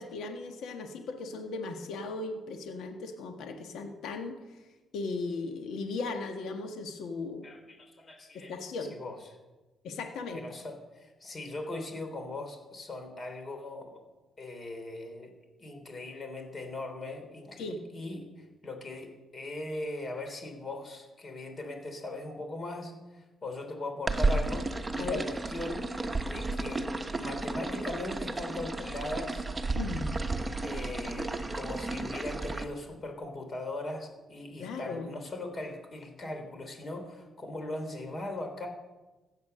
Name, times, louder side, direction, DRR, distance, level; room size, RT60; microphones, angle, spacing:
voice 1, 0.0-4.4 4.9-7.5 8.3-8.9 9.8-10.4 17.6-17.8 25.0-25.2 29.8-30.1 34.6-35.1, left 3 dB, 80° left, 5 dB, 1.4 m, -37 dB
voice 2, 7.4-8.5 9.0-9.2 10.3-13.9 14.4-15.3 15.6-17.6 17.9-24.6 24.9-25.8 26.3-29.5 30.6-38.7, left 2 dB, 40° left, 5 dB, 3.4 m, -39 dB
sound 1, 24.1-32.6, right 2 dB, 15° right, 1.1 m, -33 dB
15.5 x 8.2 x 6.8 m, 1.2 s
cardioid pair, 90°, 0 cm